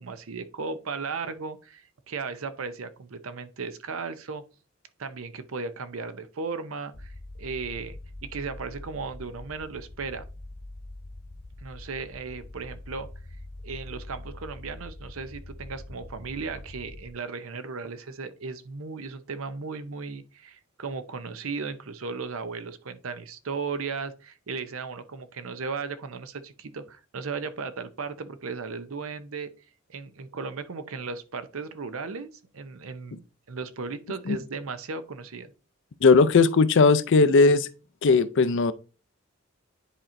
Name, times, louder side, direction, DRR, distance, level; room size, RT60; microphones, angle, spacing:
voice 1, 0.0-4.4 5.0-10.3 11.6-13.1 13.6-29.5 29.9-32.3 32.5-35.5, right 4 dB, 75° right, 0.7 m, -36 dB
sound 1, 6.9-17.1, left 1 dB, 35° left, 0.8 m, -43 dB
voice 2, 36.0-37.7 38.0-38.7, left 4 dB, 60° left, 0.5 m, -18 dB
10.0 x 4.3 x 2.6 m
head